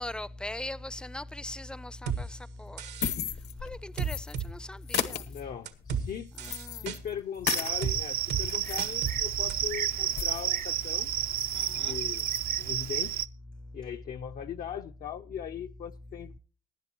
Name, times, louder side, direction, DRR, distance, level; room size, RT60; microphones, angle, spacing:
voice 1, 0.0-2.8 3.6-5.2 6.4-6.8 11.5-12.0, left 1 dB, 5° left, 0.5 m, -40 dB
sound 1, 2.1-2.2 2.8-3.1 4.0-4.5 4.9-5.1 5.7-6.0 6.4-7.0 7.8-8.0 8.3-8.4 8.8-9.2 9.5-9.6, right 7 dB, 90° right, 1.6 m, -32 dB
sound 2, 2.7-4.5 4.8-7.8 8.2-10.6 10.9-11.0 11.3-11.8 12.1-12.5, left 9 dB, 75° left, 1.3 m, -36 dB
voice 2, 5.3-6.3 6.6-11.1 11.7-12.3 12.6-13.2 13.7-16.4, left 9 dB, 60° left, 0.6 m, -39 dB
Cricket, 7.4-13.3, right 10 dB, 60° right, 0.5 m, -31 dB
19.5 x 10.5 x 2.9 m
cardioid pair, 115°, 17 cm